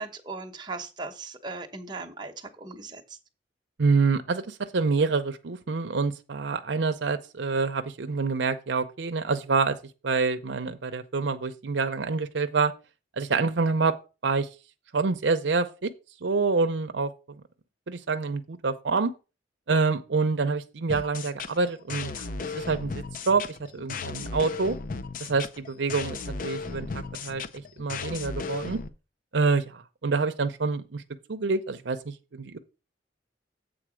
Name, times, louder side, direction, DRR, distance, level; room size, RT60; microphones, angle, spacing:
voice 1, 0.0-3.2, right 3 dB, 25° right, 1.0 m, -38 dB
voice 2, 3.8-9.8 10.0-12.7 13.2-14.0 14.2-14.5 14.9-15.9 16.2-17.4 17.9-19.1 19.7-22.3 22.5-23.5 23.7-24.8 25.2-28.8 29.3-31.0 31.3-32.6, right 4 dB, 75° right, 0.6 m, -27 dB
sound 1, 20.9-28.9, left 4 dB, 50° left, 0.5 m, -35 dB
7.9 x 3.9 x 6.2 m
head